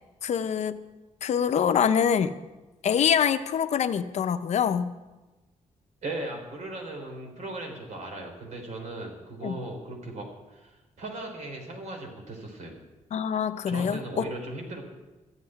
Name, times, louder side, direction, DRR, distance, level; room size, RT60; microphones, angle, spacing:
voice 1, 0.2-0.8 1.2-2.3 2.8-4.9 9.4-9.6 13.1-14.3, left 8 dB, 60° left, 10 dB, 0.7 m, -25 dB
voice 2, 6.0-12.9 13.7-14.8, right 2 dB, 65° right, 2 dB, 3.9 m, -38 dB
13.5 x 7.9 x 10.0 m, 1.1 s
wide cardioid pair, 175°, 13 cm